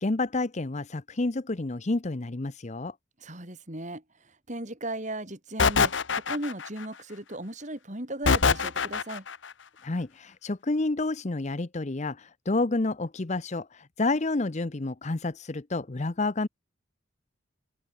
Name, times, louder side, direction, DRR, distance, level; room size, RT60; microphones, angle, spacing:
voice 1, 0.0-2.9 9.8-16.5, left 2 dB, 35° left, 0.7 m, -29 dB
voice 2, 3.2-9.2, right 1 dB, 35° right, 4.7 m, -37 dB
sound 1, 5.6-6.8 8.3-9.4, left 5 dB, 65° left, 1.0 m, -23 dB
head